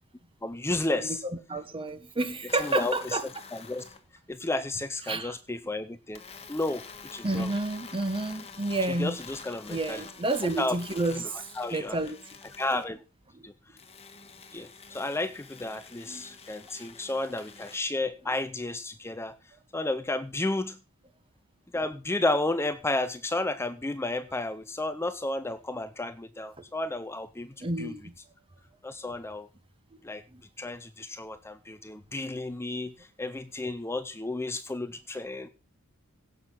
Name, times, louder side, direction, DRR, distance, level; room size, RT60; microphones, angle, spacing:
voice 1, 0.4-1.2 2.6-3.2 3.5-3.8 4.3-6.2 6.5-6.8 7.1-7.5 9.0-10.0 10.6-10.8 11.6-12.0 12.6-13.0 13.4-13.5 14.5-19.4 19.7-20.8 21.7-27.9 28.8-29.5 30.0-30.2 30.6-35.5, left 2 dB, 10° left, 12 dB, 0.5 m, -32 dB
voice 2, 0.9-3.2 5.1-5.4 7.2-9.2 9.7-11.5 11.7-12.2 13.3-13.4 16.0-16.3 27.6-28.1 30.3-30.4, right 2 dB, 25° right, 11 dB, 1.4 m, -30 dB
sound 1, 2.5-4.0 6.1-12.9 13.8-17.8, left 5 dB, 30° left, 1.6 m, -47 dB
16.5 x 6.5 x 5.7 m, 0.33 s
head